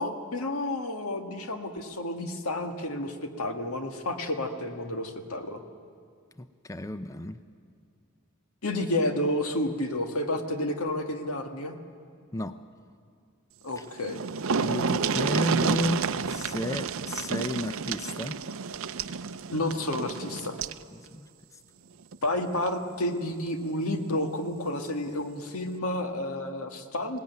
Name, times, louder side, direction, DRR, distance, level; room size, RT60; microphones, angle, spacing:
voice 1, 0.0-5.6 8.6-11.8 13.6-14.2 15.1-15.3 19.5-20.6 22.2-27.2, left 1 dB, 75° left, 5 dB, 1.9 m, -30 dB
voice 2, 6.4-7.4 12.3-12.6 13.8-13.9 14.6-18.4 20.9-21.3, left 1 dB, 15° left, 10 dB, 0.5 m, -33 dB
sound 1, 13.7-13.8 14.0-20.8 22.1-22.3 22.7-22.8, right 5 dB, 65° right, 0.6 m, -30 dB
21.0 x 18.0 x 9.4 m, 2.2 s
head